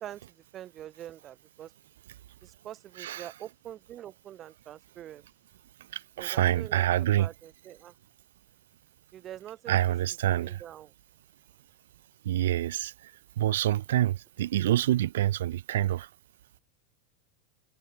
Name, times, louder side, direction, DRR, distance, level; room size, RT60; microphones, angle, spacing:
voice 1, 0.0-1.7 2.4-5.3 6.2-7.9 9.1-9.7 10.3-10.9, right 11 dB, 35° right, 1.1 m, -45 dB
voice 2, 3.0-3.3 5.9-7.3 9.7-10.6 12.2-13.1 13.4-16.1, right 13 dB, 65° right, 0.5 m, -27 dB
figure-of-eight pair, 85°, 0 cm